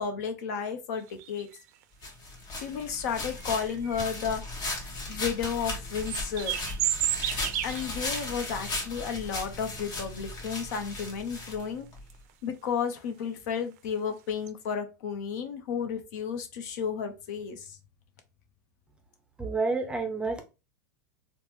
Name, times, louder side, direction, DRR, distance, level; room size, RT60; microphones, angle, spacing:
voice 1, 0.0-1.5 2.6-4.4 5.1-6.5 7.6-11.9 12.4-17.8, left 7 dB, 70° left, 7 dB, 0.7 m, -32 dB
sound 1, 1.0-1.8 2.7-2.8 3.4-4.8 5.1-5.3 5.8-8.2 8.6-8.7 9.1-9.9 10.4-11.0 11.3-11.4 12.0-12.3 12.9-13.0 13.2-13.3 13.7-13.9 14.3-14.5, right 12 dB, 60° right, 0.4 m, -33 dB
sound 2, 2.0-12.0, left 2 dB, 45° left, 1.2 m, -37 dB
voice 2, 19.4-20.4, right 3 dB, 10° right, 5 dB, 0.5 m, -29 dB
2.9 x 2.1 x 3.3 m, 0.29 s
hypercardioid pair, 120°, 10 cm